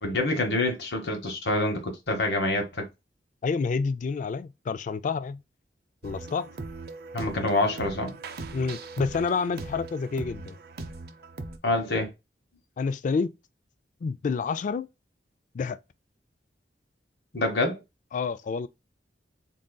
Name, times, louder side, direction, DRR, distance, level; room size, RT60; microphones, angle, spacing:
voice 1, 0.0-2.9 7.1-8.1 11.6-12.1 17.3-17.8, left 2 dB, 70° left, 1.1 m, -26 dB
voice 2, 3.4-5.4 6.0-6.5 8.5-10.6 12.8-13.3 14.0-14.9 15.5-15.8 18.1-18.7, left 5 dB, 45° left, 0.3 m, -28 dB
sound 1, 6.0-11.6, right 3 dB, 60° right, 0.6 m, -39 dB
3.9 x 3.7 x 2.2 m
head